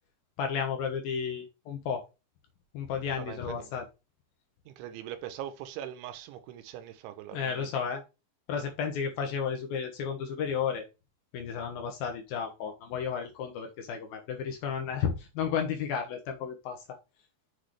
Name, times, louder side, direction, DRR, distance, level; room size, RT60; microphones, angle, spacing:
voice 1, 0.4-2.0 2.7-3.9 7.3-8.0 8.5-10.8 11.3-16.8, left 7 dB, 75° left, 2.2 m, -33 dB
voice 2, 3.1-3.7 4.7-7.7, right 11 dB, 75° right, 3.1 m, -41 dB
7.3 x 6.3 x 3.3 m
omnidirectional pair, 5.8 m